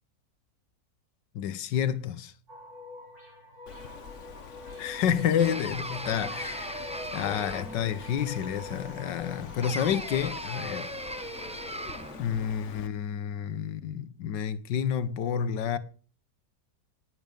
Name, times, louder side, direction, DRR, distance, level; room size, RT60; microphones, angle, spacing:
voice 1, 1.3-2.3 4.8-10.9 12.2-15.8, left 8 dB, 90° left, 1.6 m, -29 dB
sound 1, 2.5-10.2, left 1 dB, 40° right, 6.9 m, -46 dB
Bird, 3.7-12.9, left 7 dB, 50° left, 1.1 m, -46 dB
sound 2, 5.4-7.9 9.6-12.2, right 1 dB, 5° right, 0.7 m, -37 dB
18.0 x 7.9 x 5.2 m
omnidirectional pair, 1.8 m